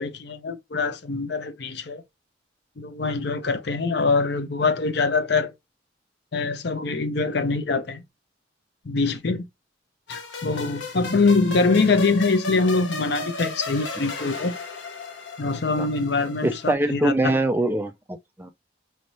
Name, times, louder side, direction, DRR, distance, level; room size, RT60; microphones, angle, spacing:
voice 1, 0.0-2.0 2.8-5.5 6.3-8.0 8.8-9.5 10.1-14.6 15.4-17.3, left 3 dB, 60° left, 0.6 m, -24 dB
sound 1, 10.1-16.7, left 2 dB, 80° left, 1.0 m, -35 dB
voice 2, 16.4-18.5, right 1 dB, 10° right, 0.3 m, -24 dB
4.4 x 3.1 x 2.6 m
head